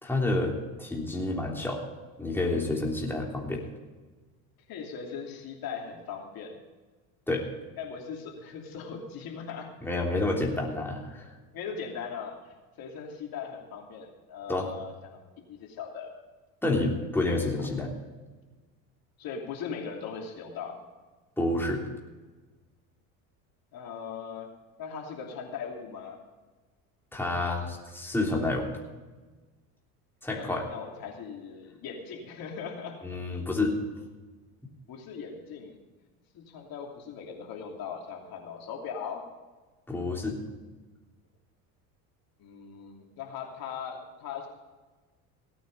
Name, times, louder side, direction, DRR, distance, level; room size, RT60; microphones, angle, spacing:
voice 1, 0.0-1.8 2.2-3.6 7.3-7.4 9.8-11.3 14.5-14.7 16.6-17.9 21.4-21.8 27.1-28.7 30.2-30.7 33.0-33.8 39.9-40.4, left 2 dB, 5° left, -2 dB, 3.3 m, -29 dB
voice 2, 4.7-6.6 7.8-9.7 11.5-16.1 19.2-20.8 23.7-24.5 24.8-26.2 30.3-33.0 34.9-35.8 36.3-39.2 42.4-44.5, left 6 dB, 55° left, 1 dB, 2.9 m, -39 dB
17.0 x 9.2 x 5.3 m, 1.3 s
supercardioid pair, 90°, 43 cm